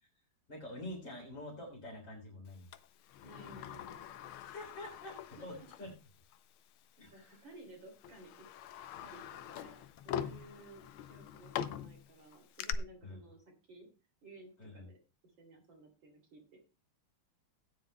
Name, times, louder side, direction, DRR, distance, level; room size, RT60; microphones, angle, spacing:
voice 1, 0.5-2.7 4.4-5.9 7.0-7.4 13.0-13.2 14.6-14.8, left 1 dB, 60° left, -1 dB, 4.1 m, -46 dB
Sliding door, 2.7-6.0 6.3-6.4 7.3-7.5 8.0-12.7, left 10 dB, 85° left, 1.5 m, -43 dB
voice 2, 3.2-4.1 5.3-5.7 7.1-8.5 9.0-10.8 11.1-13.9 14.2-15.0 15.4-16.6, right 2 dB, 65° right, 2 dB, 3.6 m, -56 dB
17.0 x 9.4 x 2.2 m, 0.30 s
omnidirectional pair, 2.3 m